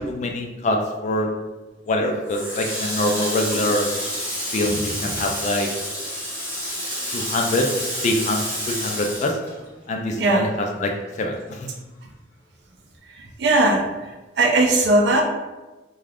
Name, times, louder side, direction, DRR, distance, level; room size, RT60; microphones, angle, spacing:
voice 1, 0.1-1.3 1.9-3.9 4.5-5.7 7.1-7.7 8.0-8.4 8.7-9.4 9.9-10.9 11.2-11.7, left 1 dB, 40° left, 2 dB, 0.3 m, -24 dB
Water tap faucet, 2.3-10.1 10.4-11.8, equal, 10° left, 1.2 m, -29 dB
voice 2, 13.4-13.8 14.4-15.2, right 2 dB, 60° right, 1 dB, 0.4 m, -17 dB
2.4 x 2.3 x 3.3 m, 1.2 s
head